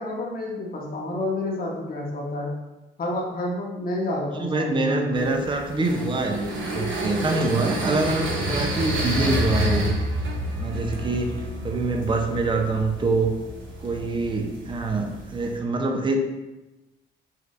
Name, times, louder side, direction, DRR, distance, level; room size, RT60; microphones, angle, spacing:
voice 1, 0.0-2.5 3.0-5.3, left 1 dB, 45° left, -3 dB, 1.2 m, -29 dB
voice 2, 4.3-9.9 10.6-13.3 13.8-16.2, right 3 dB, 25° right, 3 dB, 0.6 m, -25 dB
sound 1, 5.2-15.6, right 1 dB, 75° right, 1.0 m, -29 dB
5.6 x 3.1 x 2.5 m, 1.0 s
cardioid pair, 90°, 20 cm